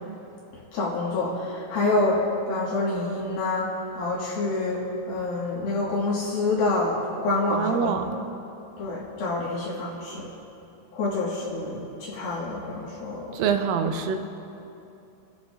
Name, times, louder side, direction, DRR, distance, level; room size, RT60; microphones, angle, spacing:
voice 1, 0.7-4.8 5.1-7.9 8.8-10.3 10.9-13.3, left 2 dB, 65° left, -5 dB, 2.8 m, -27 dB
voice 2, 7.5-8.1 13.3-14.2, right 6 dB, 90° right, 6 dB, 3.4 m, -25 dB
28.5 x 12.0 x 2.4 m, 2.8 s
omnidirectional pair, 5.7 m